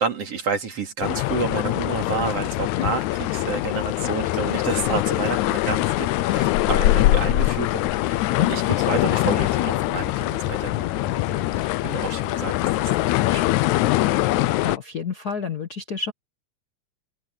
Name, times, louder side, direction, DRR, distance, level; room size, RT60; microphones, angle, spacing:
voice 1, 0.0-13.6, right 5 dB, 55° right, 3.9 m, -30 dB
sound 1, 1.0-14.8, left 16 dB, 80° left, 2.0 m, -23 dB
voice 2, 14.6-16.1, left 5 dB, 45° left, 1.4 m, -29 dB
open air
omnidirectional pair, 3.4 m